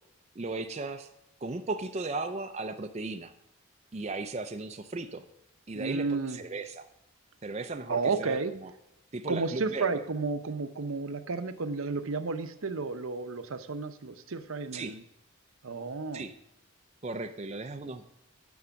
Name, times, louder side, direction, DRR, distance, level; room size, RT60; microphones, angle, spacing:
voice 1, 0.4-1.1 1.4-3.3 3.9-5.2 5.7-6.9 7.4-8.7 9.1-10.0 14.7-14.9 16.1-16.3 17.0-18.1, right 3 dB, 30° right, 6 dB, 0.5 m, -36 dB
voice 2, 5.7-6.4 7.9-8.5 9.3-15.0 15.6-16.2, right 4 dB, 75° right, 10 dB, 0.7 m, -32 dB
9.4 x 6.2 x 7.0 m, 0.81 s
head